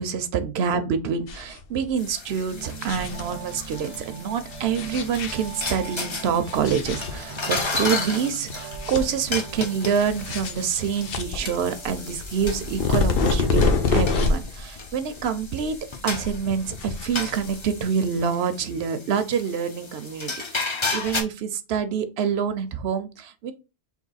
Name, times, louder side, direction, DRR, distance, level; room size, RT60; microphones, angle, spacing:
voice 1, 0.0-15.8 16.0-23.5, right 7 dB, 75° right, 0.8 m, -26 dB
sound 1, 1.3-1.6 1.9-2.0 2.5-3.7 4.5-5.8 6.5-7.6 8.0-8.1 8.5-9.5 9.9-14.6 14.9-15.8 16.1-17.8, left 4 dB, 65° left, 0.8 m, -27 dB
sound 2, 2.0-21.2, left 3 dB, 30° left, 0.6 m, -34 dB
Piano, 2.5-12.2, right 9 dB, 40° right, 0.5 m, -43 dB
3.6 x 2.8 x 4.0 m
omnidirectional pair, 1.1 m